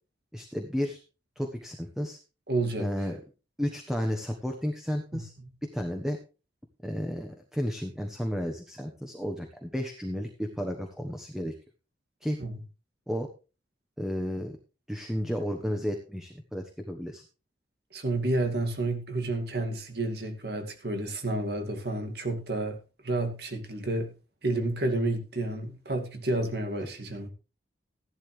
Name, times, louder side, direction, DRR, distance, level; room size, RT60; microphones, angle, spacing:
voice 1, 0.3-1.0 1.4-2.2 2.8-3.2 3.6-5.3 5.6-6.2 6.8-11.5 12.2-12.4 13.1-13.3 14.0-14.6 14.9-17.2, equal, 5° right, 1.2 m, -32 dB
voice 2, 2.5-2.9 5.1-5.2 12.4-12.6 17.9-22.8 23.0-24.1 24.4-27.3, right 2 dB, 60° right, 2.4 m, -30 dB
14.5 x 11.5 x 3.3 m
head